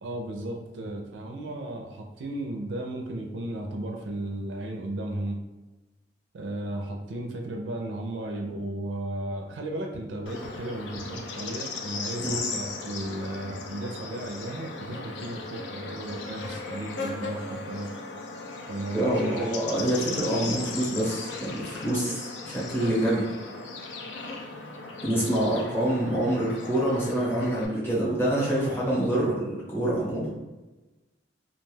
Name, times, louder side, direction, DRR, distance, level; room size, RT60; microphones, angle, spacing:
voice 1, 0.0-5.4 6.3-17.9 18.7-19.4 25.1-25.5, right 1 dB, 80° right, 2 dB, 0.4 m, -35 dB
Bird / Insect, 10.3-27.7, left 3 dB, 75° left, 0.4 m, -37 dB
voice 2, 18.9-23.3 25.0-30.3, right 1 dB, 10° left, -7 dB, 0.8 m, -26 dB
2.3 x 2.2 x 3.1 m, 1.1 s
head